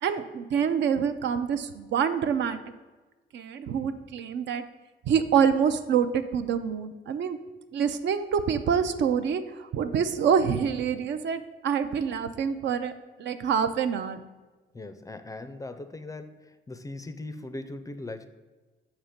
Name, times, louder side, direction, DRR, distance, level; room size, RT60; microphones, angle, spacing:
voice 1, 0.0-2.6 3.3-4.6 5.0-7.4 7.7-12.9 13.2-14.2, right 7 dB, 65° right, 10 dB, 0.5 m, -26 dB
voice 2, 14.7-18.3, left 2 dB, 15° left, 10 dB, 0.4 m, -39 dB
6.7 x 2.9 x 5.7 m, 1.2 s
cardioid pair, 90°, 20 cm